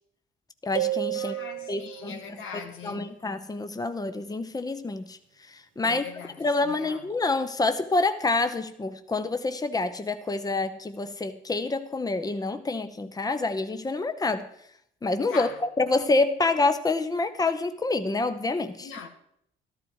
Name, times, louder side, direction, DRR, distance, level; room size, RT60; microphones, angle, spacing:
voice 1, 0.6-1.3 1.7-5.2 5.5-6.0 6.4-14.5 15.0-18.9, left 3 dB, 20° left, 1.0 m, -27 dB
sound 1, 0.7-2.2, right 14 dB, 70° right, 0.9 m, -31 dB
voice 2, 1.1-3.2 5.8-7.1 15.3-15.6 18.8-19.1, left 6 dB, 90° left, 1.9 m, -41 dB
13.0 x 13.0 x 4.8 m
cardioid pair, 90°, 20 cm